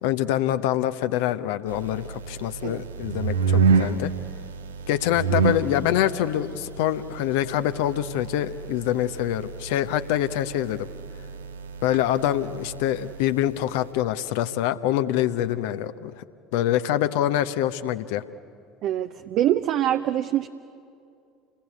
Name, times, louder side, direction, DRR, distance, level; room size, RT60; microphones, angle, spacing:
voice 1, 0.0-4.1 4.9-10.9 11.8-16.2 16.5-18.2, left 12 dB, 60° left, 11 dB, 0.8 m, -25 dB
sound 1, 1.7-13.9, right 5 dB, 75° right, 0.9 m, -29 dB
voice 2, 18.8-20.5, right 12 dB, 50° right, 8 dB, 0.7 m, -24 dB
29.0 x 20.5 x 8.4 m, 2.4 s
figure-of-eight pair, 65°, 0 cm